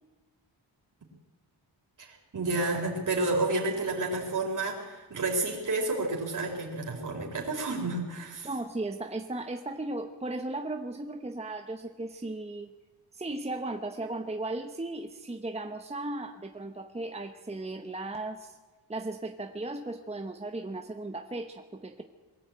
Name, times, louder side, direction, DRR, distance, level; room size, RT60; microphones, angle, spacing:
voice 1, 2.0-8.5, right 2 dB, 45° right, -1 dB, 4.2 m, -30 dB
voice 2, 8.4-12.7 13.1-18.6 18.9-22.0, right 2 dB, 15° right, 6 dB, 0.9 m, -36 dB
22.0 x 14.5 x 8.8 m, 1.3 s
wide cardioid pair, 125°, 43 cm